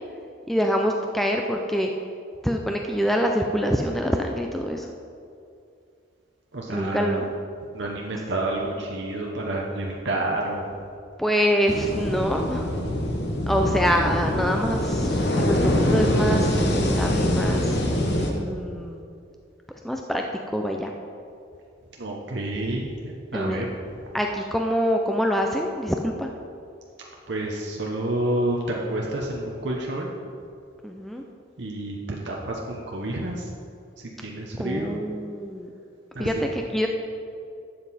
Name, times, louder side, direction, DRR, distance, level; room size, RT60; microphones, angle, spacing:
voice 1, 0.5-1.9 2.4-4.9 6.7-7.2 11.2-12.7 13.5-17.8 18.4-19.0 19.8-20.9 23.3-23.6 24.1-26.3 30.8-31.2 34.6-35.7 36.2-36.9, equal, ahead, 2 dB, 0.4 m, -25 dB
voice 2, 6.5-7.2 7.7-10.7 13.6-13.7 22.0-23.7 27.3-30.1 31.6-33.4 34.2-35.0 36.1-36.3, right 1 dB, 65° right, -1 dB, 0.9 m, -29 dB
sound 1, 11.7-18.3, left 1 dB, 60° left, 1.2 m, -24 dB
12.0 x 7.6 x 4.2 m, 2.5 s
head